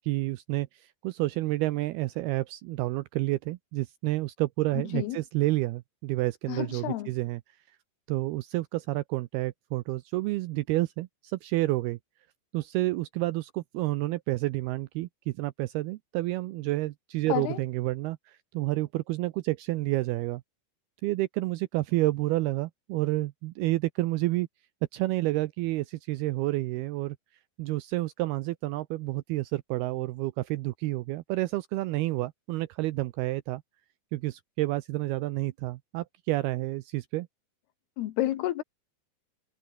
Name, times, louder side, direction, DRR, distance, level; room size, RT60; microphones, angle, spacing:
voice 1, 0.0-7.4 8.1-12.0 12.5-20.4 21.0-24.5 24.9-27.2 27.6-33.6 34.1-37.3, right 18 dB, 85° right, 2.3 m, -29 dB
voice 2, 6.5-7.1 17.3-17.6 38.0-38.6, left 14 dB, 70° left, 2.9 m, -30 dB
omnidirectional pair, 5.2 m